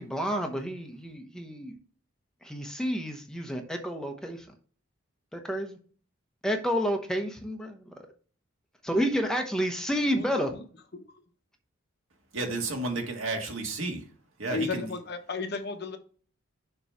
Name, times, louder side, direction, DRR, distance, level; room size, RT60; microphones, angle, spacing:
voice 1, 0.0-1.8 2.4-4.5 5.3-5.8 6.4-7.9 8.8-10.5, equal, 5° left, 0.9 m, -30 dB
voice 2, 10.1-10.6 10.9-11.2 14.5-16.0, left 4 dB, 50° left, 1.0 m, -34 dB
voice 3, 12.3-14.1 14.4-14.9, right 2 dB, 70° right, 1.7 m, -32 dB
6.7 x 3.1 x 5.9 m
head